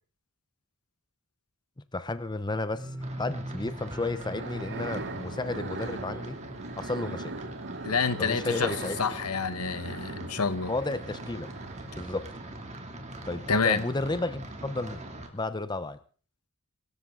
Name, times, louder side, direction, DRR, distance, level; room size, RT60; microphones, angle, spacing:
voice 1, 1.9-6.4 6.8-7.3 8.2-9.0 10.7-11.5 11.9-12.3 13.3-15.0 15.3-16.0, left 2 dB, 20° left, 0.8 m, -32 dB
sound 1, 2.8-9.6 9.9-10.5 10.8-10.9, equal, 15° right, 2.9 m, -43 dB
sound 2, 3.0-15.3, right 1 dB, 30° right, 2.8 m, -43 dB
sound 3, 4.1-12.2, right 3 dB, 50° right, 1.6 m, -40 dB
voice 2, 7.8-10.7 13.5-13.8, left 5 dB, 80° left, 1.3 m, -28 dB
25.0 x 13.5 x 3.9 m
head